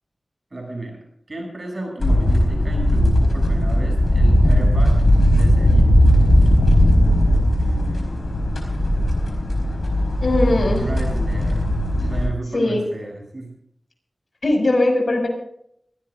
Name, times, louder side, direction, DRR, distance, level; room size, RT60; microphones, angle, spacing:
voice 1, 0.5-5.0 5.3-5.9 7.6-8.4 10.8-11.7 12.0-13.6, right 2 dB, 50° right, 1 dB, 7.9 m, -33 dB
sound 1, 2.0-12.3, equal, 85° left, 4.5 m, -17 dB
voice 2, 10.2-10.8 12.5-12.8 14.4-15.3, left 2 dB, 65° left, 2 dB, 6.3 m, -19 dB
24.0 x 17.0 x 2.6 m, 0.70 s
wide cardioid pair, 55°, 0 cm